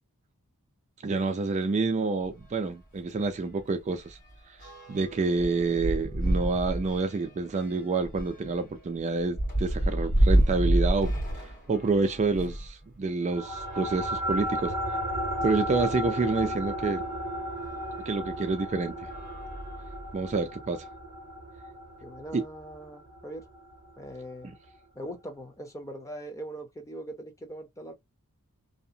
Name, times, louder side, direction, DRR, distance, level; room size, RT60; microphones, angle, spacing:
voice 1, 1.0-4.2 4.9-11.1 11.7-14.7 15.4-17.0 18.1-19.1 20.1-20.9 22.3-22.4 24.4-24.5, right 3 dB, 30° right, 0.3 m, -28 dB
sound 1, 2.3-2.4 2.8-3.0 3.2-12.7 13.4-14.8 15.5-15.6 15.8-15.9 17.6-17.7 18.3-18.6 19.0-20.3, right 1 dB, 40° left, 1.6 m, -29 dB
sound 2, 13.3-24.1, equal, 70° right, 0.7 m, -34 dB
voice 2, 22.0-23.5 24.0-24.5 24.9-27.9, right 1 dB, 15° left, 0.6 m, -41 dB
2.7 x 2.1 x 2.6 m
head